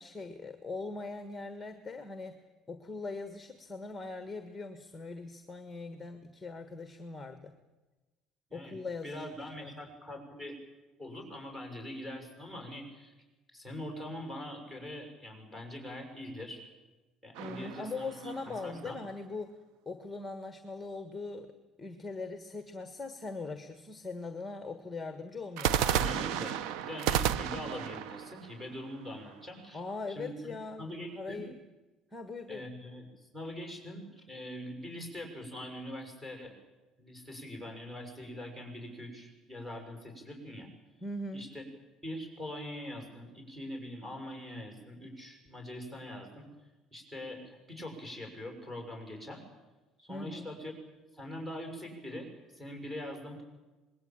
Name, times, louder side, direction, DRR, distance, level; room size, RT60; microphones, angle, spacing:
voice 1, 0.0-2.4 2.7-7.5 8.5-9.7 17.4-19.5 19.8-25.8 29.7-31.6 32.1-32.6 41.0-41.5 50.1-50.6, left 3 dB, 10° left, 9 dB, 1.5 m, -41 dB
voice 2, 9.0-10.6 11.0-13.1 13.5-16.7 17.2-18.3 18.6-19.0 25.8-29.8 30.1-31.5 32.5-36.6 37.0-40.7 41.3-41.6 42.0-46.5 46.9-49.5 50.0-50.7 51.1-53.4, left 1 dB, 10° right, 3 dB, 6.6 m, -43 dB
sound 1, 17.3-18.8 25.6-29.5, right 9 dB, 80° right, 1.0 m, -33 dB
26.0 x 21.0 x 9.0 m, 1.1 s
cardioid pair, 160°, 0 cm